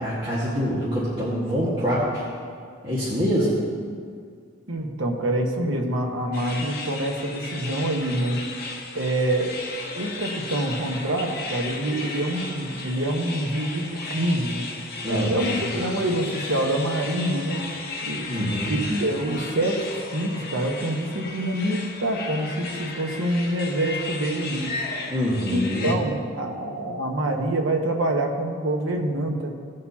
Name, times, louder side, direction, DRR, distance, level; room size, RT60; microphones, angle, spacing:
voice 1, 0.0-2.2 2.8-3.5 15.0-15.7 18.3-18.7 25.1-25.9, equal, 25° right, -10 dB, 1.7 m, -25 dB
voice 2, 4.7-8.4 8.7-9.7 10.0-14.7 15.1-17.7 18.0-24.8 25.5-29.5, right 1 dB, 80° right, 2 dB, 1.2 m, -26 dB
sound 1, 6.3-25.9, left 3 dB, 50° left, 1.3 m, -35 dB
18.0 x 6.7 x 2.9 m, 2.1 s
head